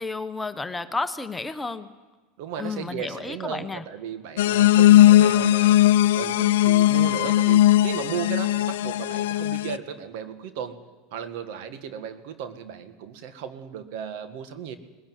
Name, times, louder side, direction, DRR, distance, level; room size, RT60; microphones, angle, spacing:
voice 1, 0.0-1.9 2.6-3.8, left 3 dB, 15° left, 10 dB, 1.1 m, -31 dB
voice 2, 2.4-5.8 6.1-10.8 11.1-14.8, right 8 dB, 65° right, 9 dB, 1.8 m, -35 dB
sound 1, 4.4-9.8, left 13 dB, 75° left, 0.6 m, -18 dB
19.5 x 16.5 x 9.4 m, 1.3 s
hypercardioid pair, 95°, 0 cm